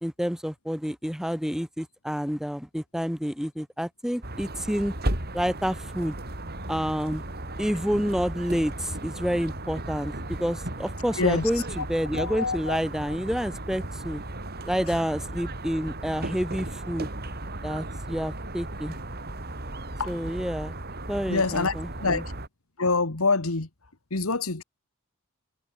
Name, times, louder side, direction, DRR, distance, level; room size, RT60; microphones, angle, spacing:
voice 1, 0.0-4.9 5.3-6.2 6.7-7.2 7.6-10.1 10.4-14.2 14.7-17.1 17.6-19.0 20.1-20.7 21.1-22.2, equal, ahead, 2.8 m, -29 dB
sound 1, 4.2-22.5, right 1 dB, 45° right, 6.8 m, -35 dB
voice 2, 12.2-12.8 20.0-20.1 21.3-21.7 22.0-22.3 22.8-23.7 24.1-24.6, left 3 dB, 75° left, 1.9 m, -25 dB
head